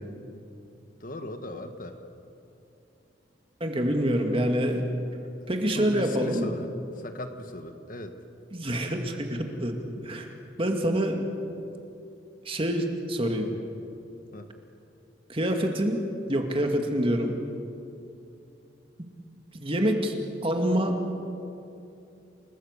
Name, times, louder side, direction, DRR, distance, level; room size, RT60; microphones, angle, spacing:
voice 1, 1.0-2.0 5.7-8.2 14.3-14.5, left 1 dB, 45° left, 7 dB, 1.5 m, -38 dB
voice 2, 3.6-4.9 5.5-6.5 8.5-10.3 10.6-11.3 12.5-13.5 15.3-16.0 16.3-17.3 19.6-20.1 20.4-21.0, equal, 30° right, 3 dB, 2.2 m, -26 dB
29.0 x 19.0 x 8.3 m, 2.7 s
head